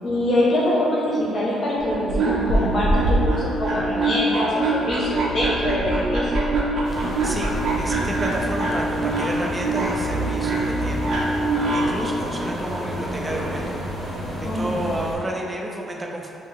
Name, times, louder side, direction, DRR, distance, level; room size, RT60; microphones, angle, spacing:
voice 1, 0.0-6.5 14.4-14.8, left 1 dB, 55° left, -6 dB, 0.8 m, -24 dB
sound 1, 1.8-12.0, right 2 dB, 65° right, 0.7 m, -24 dB
sound 2, 6.8-15.1, equal, 40° right, 1.0 m, -31 dB
voice 2, 6.9-11.4 11.7-13.8 14.4-16.3, right 1 dB, 20° right, -1 dB, 0.5 m, -31 dB
5.1 x 2.1 x 3.7 m, 2.9 s
cardioid pair, 90°, 0 cm